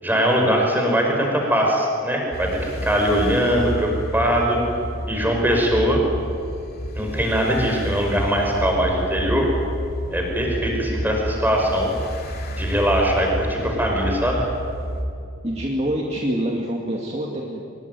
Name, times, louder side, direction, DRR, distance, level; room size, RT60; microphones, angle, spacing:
voice 1, 0.0-4.6 5.1-6.0 6.9-9.5 10.1-11.9 12.6-14.4, equal, 10° right, 0 dB, 5.5 m, -21 dB
sound 1, 2.3-15.0, equal, 45° left, 3.3 m, -30 dB
voice 2, 15.4-17.6, right 1 dB, 30° right, -1 dB, 2.3 m, -25 dB
24.5 x 21.5 x 9.5 m, 2.6 s
head